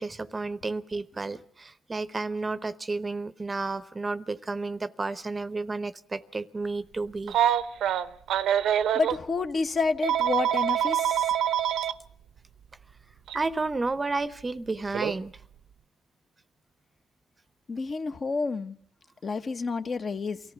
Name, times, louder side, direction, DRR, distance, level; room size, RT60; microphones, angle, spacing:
voice 1, 0.0-7.3 13.3-15.3, right 3 dB, 25° right, 15 dB, 0.8 m, -31 dB
Telephone, 7.3-9.2 10.0-11.9 13.3-13.4 14.9-15.1, right 10 dB, 75° right, 0.8 m, -25 dB
voice 2, 8.9-11.3 17.7-18.8 19.2-20.4, left 4 dB, 40° left, 9 dB, 1.1 m, -29 dB
23.5 x 14.5 x 8.1 m, 0.66 s
cardioid pair, 90°, 0 cm